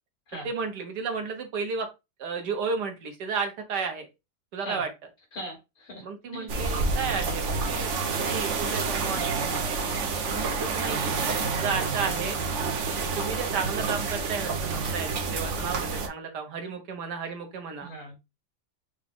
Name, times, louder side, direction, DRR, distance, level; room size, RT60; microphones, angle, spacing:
voice 1, 0.4-1.9 2.2-4.1 4.5-4.9 6.0-11.2 11.5-12.4 13.0-17.9, right 5 dB, 75° right, 1.5 m, -33 dB
voice 2, 5.3-6.0 6.3-6.5 11.7-12.0 17.8-18.2, equal, 60° left, 2.4 m, -39 dB
sound 1, 6.5-16.1, right 4 dB, 55° right, 0.9 m, -29 dB
4.9 x 2.3 x 3.4 m
omnidirectional pair, 1.8 m